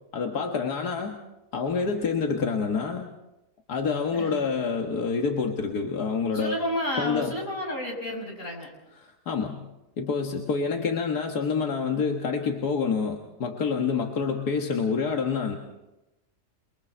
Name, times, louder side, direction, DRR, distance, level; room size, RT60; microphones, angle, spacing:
voice 1, 0.1-1.2 1.5-3.1 3.7-6.5 7.0-7.4 9.0-9.6 10.0-15.6, left 5 dB, 90° left, 2 dB, 2.0 m, -27 dB
voice 2, 4.1-4.5 6.3-8.7, left 1 dB, 55° left, 0 dB, 7.1 m, -31 dB
29.5 x 23.0 x 4.5 m, 0.96 s
omnidirectional pair, 1.6 m